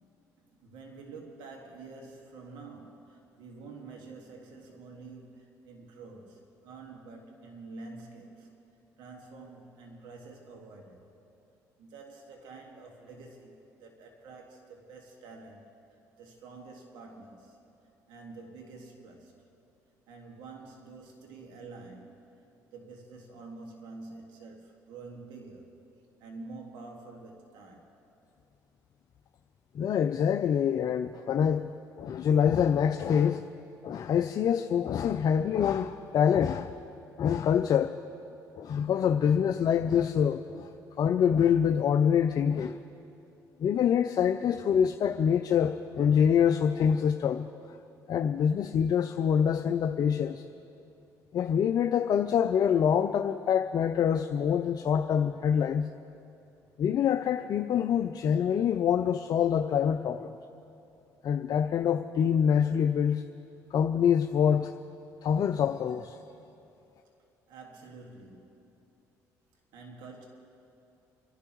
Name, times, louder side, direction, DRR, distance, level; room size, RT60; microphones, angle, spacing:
voice 1, 0.0-8.5 9.0-11.1 11.8-15.7 16.2-17.6 18.1-19.3 20.1-25.8 26.2-27.9 67.5-68.9 69.7-70.3, right 3 dB, 80° right, 1 dB, 1.9 m, -48 dB
voice 2, 29.7-31.7 32.0-33.4 33.8-36.7 37.2-37.9 38.6-40.7 41.0-42.8 43.6-47.5 48.1-50.4 51.3-55.9 56.8-60.4 61.2-63.2 63.7-64.7 65.2-66.2, left 8 dB, 55° left, 6 dB, 0.5 m, -25 dB
29.5 x 11.5 x 3.1 m, 2.8 s
supercardioid pair, 70°, 8 cm